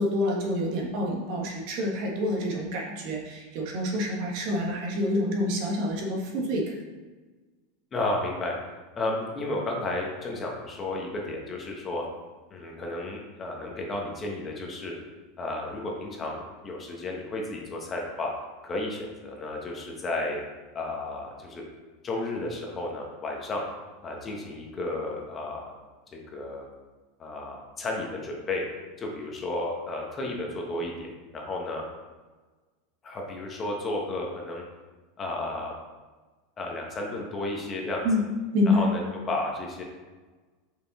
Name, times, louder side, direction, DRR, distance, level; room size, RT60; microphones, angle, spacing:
voice 1, 0.0-6.8 38.0-38.2 38.5-38.9, left 1 dB, 55° right, -1 dB, 1.6 m, -27 dB
voice 2, 7.9-8.6 9.0-12.0 12.5-14.9 15.4-18.3 18.6-20.4 20.7-21.6 22.0-23.6 24.0-25.7 26.1-26.7 27.2-28.6 29.0-31.8 33.0-34.6 35.2-35.7 36.6-38.0 38.7-39.0 39.3-39.8, left 2 dB, 20° left, 0 dB, 1.2 m, -32 dB
5.7 x 5.2 x 4.2 m, 1.3 s
supercardioid pair, 150°, 0 cm